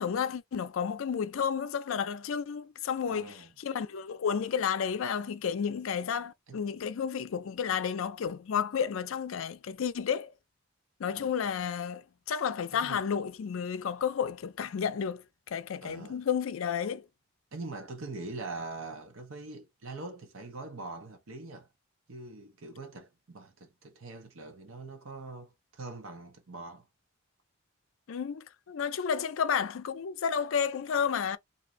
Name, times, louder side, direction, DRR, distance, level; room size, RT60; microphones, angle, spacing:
voice 1, 0.0-10.3 11.0-15.2 15.5-17.0 28.1-31.4, left 7 dB, 70° left, 0.4 m, -31 dB
voice 2, 3.0-3.5 6.5-6.6 11.1-11.3 12.7-13.0 15.8-16.2 17.5-21.7 22.1-26.9, right 3 dB, 75° right, 0.9 m, -43 dB
2.7 x 2.5 x 2.9 m
head